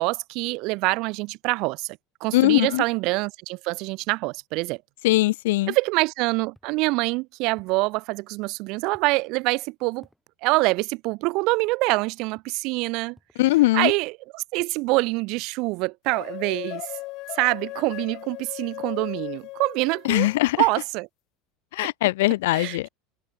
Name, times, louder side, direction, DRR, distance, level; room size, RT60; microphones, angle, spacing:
voice 1, 0.0-4.8 5.7-10.1 10.4-13.2 13.7-16.9 17.3-20.3 20.6-21.1 22.5-22.9, right 24 dB, 55° right, 0.5 m, -25 dB
voice 2, 2.3-2.8 5.0-5.7 13.4-13.9 20.0-20.6 21.7-22.9, left 18 dB, 85° left, 0.3 m, -21 dB
sound 1, 6.5-6.8 7.5-7.9 8.9-9.2 10.0-10.2 11.5-11.7 12.3-12.6 13.1-13.4 13.9-14.2, equal, ahead, 7.0 m, -58 dB
sound 2, 16.1-20.6, left 21 dB, 55° left, 1.6 m, -37 dB
supercardioid pair, 140°, 0 cm